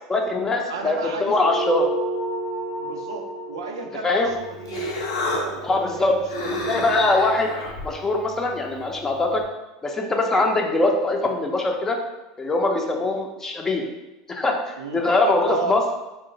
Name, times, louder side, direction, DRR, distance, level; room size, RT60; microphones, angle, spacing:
voice 1, 0.1-1.8 4.0-4.3 5.6-6.1 6.7-7.5 7.8-9.4 9.8-12.0 12.4-13.9 14.3-15.8, left 2 dB, 20° left, 2 dB, 0.5 m, -22 dB
voice 2, 0.7-1.3 2.8-5.0 5.3-7.0 10.3-10.5 12.9-13.0 14.8-15.1 15.4-15.8, right 4 dB, 90° right, 4 dB, 0.4 m, -33 dB
sound 1, 1.3-6.1, right 1 dB, ahead, 0.9 m, -32 dB
Human voice, 4.2-9.4, left 2 dB, 85° left, 0.7 m, -32 dB
2.9 x 2.1 x 3.8 m, 1.0 s
hypercardioid pair, 95°, 2 cm